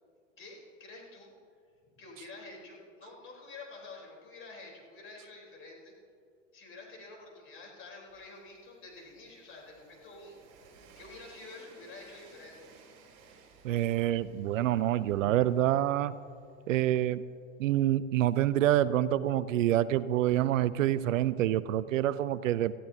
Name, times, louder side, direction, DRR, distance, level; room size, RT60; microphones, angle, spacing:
voice 1, 0.4-1.3 1.9-5.9 6.5-10.4 11.0-12.7, left 3 dB, 30° left, -1 dB, 3.9 m, -49 dB
Train, 8.1-17.9, right 5 dB, 45° right, 3.5 m, -59 dB
voice 2, 13.6-16.2 16.7-17.2 17.6-22.7, right 12 dB, 80° right, 17 dB, 0.5 m, -27 dB
18.0 x 14.0 x 2.8 m, 2.2 s
hypercardioid pair, 100°, 39 cm